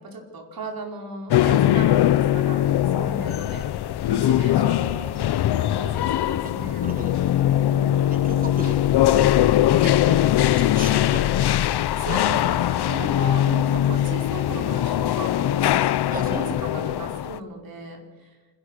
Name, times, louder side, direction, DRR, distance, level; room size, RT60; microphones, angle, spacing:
voice 1, 0.0-3.7 4.1-5.2 5.6-6.8 7.6-8.2 12.0-18.3, right 2 dB, 60° right, 2 dB, 4.8 m, -36 dB
sound 1, 1.3-17.4, left 12 dB, 80° left, 0.8 m, -21 dB
voice 2, 6.8-7.3 8.1-8.7 9.6-11.3 12.3-12.4 12.7-12.9 16.1-16.5, right 2 dB, 20° right, 3 dB, 3.2 m, -36 dB
28.0 x 21.5 x 6.7 m, 1.4 s
cardioid pair, 90°, 39 cm